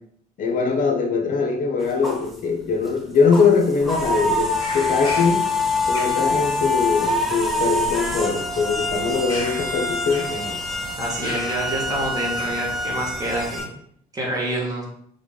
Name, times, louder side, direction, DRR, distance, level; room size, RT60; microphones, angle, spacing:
voice 1, 0.4-5.4 5.9-10.6, left 5 dB, 55° left, 4 dB, 0.8 m, -22 dB
sound 1, 1.8-2.4 2.8-3.0 3.3-13.7, left 2 dB, ahead, 0.9 m, -25 dB
Bird vocalization bird call bird song, 3.8-13.6, left 2 dB, 25° left, 2.0 m, -36 dB
voice 2, 11.0-13.7 14.1-14.8, right 1 dB, 20° right, -3 dB, 1.7 m, -27 dB
3.9 x 3.5 x 3.8 m, 0.66 s
cardioid pair, 110°, 17 cm